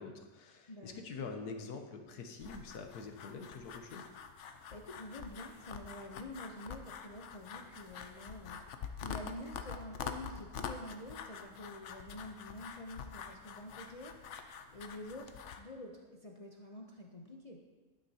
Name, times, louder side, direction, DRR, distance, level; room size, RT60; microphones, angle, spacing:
voice 1, 0.0-4.1, left 4 dB, 85° left, 5 dB, 1.4 m, -45 dB
voice 2, 0.7-1.0 4.7-8.6 9.0-14.2 14.7-17.6, left 1 dB, 40° left, 0 dB, 0.5 m, -48 dB
sound 1, 2.4-15.6, left 7 dB, 60° left, 0.8 m, -46 dB
11.5 x 9.4 x 2.8 m, 1.3 s
omnidirectional pair, 1.6 m